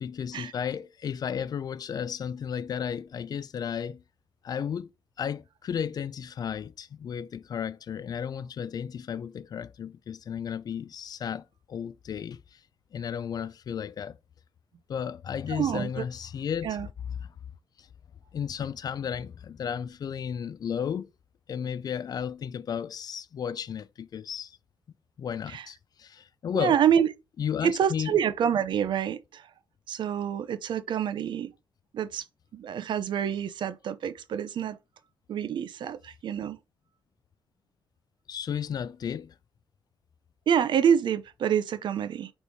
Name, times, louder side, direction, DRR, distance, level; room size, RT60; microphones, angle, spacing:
voice 1, 0.0-4.0 4.4-4.9 5.2-12.6 12.9-14.2 14.9-16.8 17.8-17.9 18.3-21.1 21.5-24.6 25.2-26.8 27.4-28.2 38.3-39.3, left 8 dB, 55° left, 0.4 m, -33 dB
voice 2, 15.5-16.0 16.6-16.9 25.5-25.6 26.5-27.1 27.6-29.5 29.9-31.5 31.9-32.2 32.5-34.8 35.3-36.6 40.5-42.3, right 8 dB, 70° right, 0.7 m, -27 dB
5.2 x 4.2 x 4.7 m
cardioid pair, 120°, 8 cm